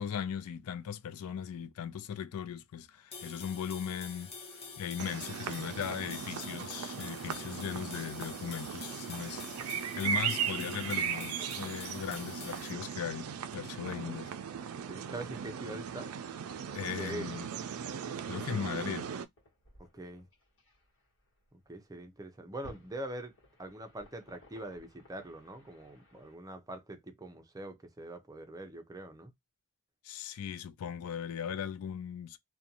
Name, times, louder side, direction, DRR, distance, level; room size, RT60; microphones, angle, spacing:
voice 1, 0.0-9.4 10.0-14.3 16.7-17.5 18.3-19.1 30.0-32.4, left 8 dB, 75° left, 0.4 m, -38 dB
sound 1, 3.1-12.7, left 4 dB, 30° left, 0.7 m, -47 dB
sound 2, 5.0-19.3, right 8 dB, 70° right, 0.4 m, -38 dB
voice 2, 13.8-14.2 14.7-16.1 16.8-17.3 19.8-20.3 21.7-23.3 23.6-29.3, right 1 dB, 15° right, 0.5 m, -43 dB
sound 3, 19.3-26.4, equal, 60° left, 1.1 m, -58 dB
2.5 x 2.2 x 2.7 m
head